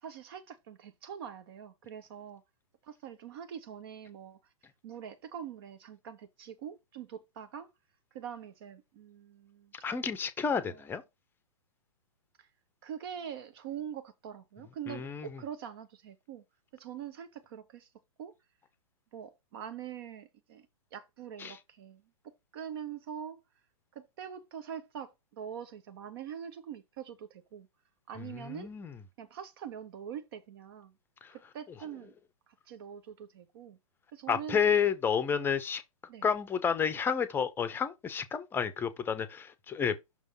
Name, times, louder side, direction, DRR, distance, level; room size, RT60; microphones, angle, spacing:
voice 1, 0.0-2.4 2.8-4.5 4.8-7.7 8.1-9.7 10.7-10.8 12.4-12.5 12.8-16.4 16.7-17.9 18.2-18.3 19.1-23.4 23.9-27.7 28.1-28.7 29.2-30.9 31.5-32.1 32.5-33.8 34.1-34.6 35.3-35.6 36.1-36.3, right 8 dB, 40° right, 0.9 m, -44 dB
voice 2, 9.8-11.0 14.9-15.3 21.4-21.5 28.4-28.9 31.2-31.3 34.3-35.8 36.2-40.0, left 7 dB, 10° left, 0.7 m, -30 dB
6.3 x 3.5 x 5.3 m
figure-of-eight pair, 120°, 18 cm